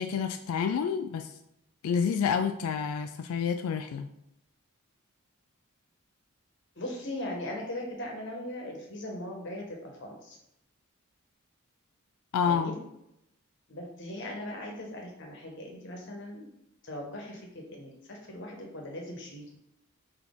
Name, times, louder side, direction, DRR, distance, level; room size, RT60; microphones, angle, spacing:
voice 1, 0.0-1.3 1.8-4.1 12.3-12.8, left 6 dB, 90° left, 8 dB, 0.3 m, -29 dB
voice 2, 6.8-10.4 12.4-12.8 13.7-16.5 16.8-19.6, left 1 dB, 55° left, 0 dB, 1.0 m, -39 dB
4.1 x 2.9 x 3.6 m, 0.81 s
head